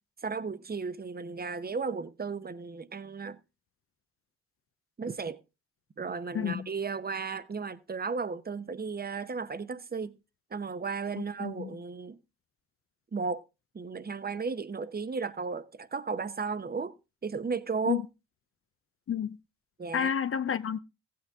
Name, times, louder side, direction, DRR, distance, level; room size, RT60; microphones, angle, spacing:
voice 1, 0.2-3.4 5.0-5.4 6.0-10.1 10.5-12.2 13.1-13.4 13.7-16.9 17.2-18.0 19.8-20.1, right 5 dB, 30° right, 0.9 m, -34 dB
voice 2, 6.3-6.7 11.2-11.8 17.9-18.0 19.1-19.4 19.9-20.8, left 8 dB, 45° left, 0.6 m, -30 dB
15.0 x 8.7 x 3.6 m
supercardioid pair, 60°, 30 cm